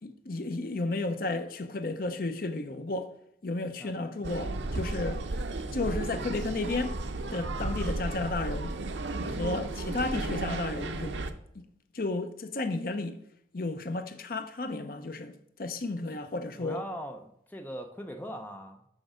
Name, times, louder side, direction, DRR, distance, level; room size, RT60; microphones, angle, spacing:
voice 1, 0.0-3.1 3.4-5.2 5.7-7.0 7.3-8.8 9.3-11.3 11.5-11.6 11.9-13.2 13.5-16.8, left 2 dB, 50° left, 0.6 m, -33 dB
sound 1, 4.2-11.3, right 2 dB, 85° right, 0.6 m, -34 dB
voice 2, 9.1-9.7 16.6-18.9, equal, 10° left, 0.5 m, -41 dB
6.3 x 5.8 x 5.0 m
head